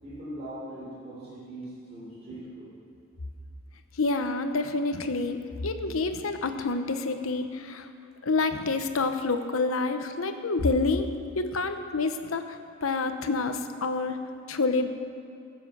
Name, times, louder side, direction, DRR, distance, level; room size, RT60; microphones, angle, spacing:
voice 1, 0.0-2.7, right 1 dB, 35° right, -8 dB, 3.6 m, -40 dB
voice 2, 4.0-7.9 8.2-11.1 11.4-12.4 12.8-14.2 14.5-14.9, left 3 dB, 90° left, 8 dB, 0.9 m, -28 dB
15.5 x 7.5 x 7.2 m, 2.5 s
head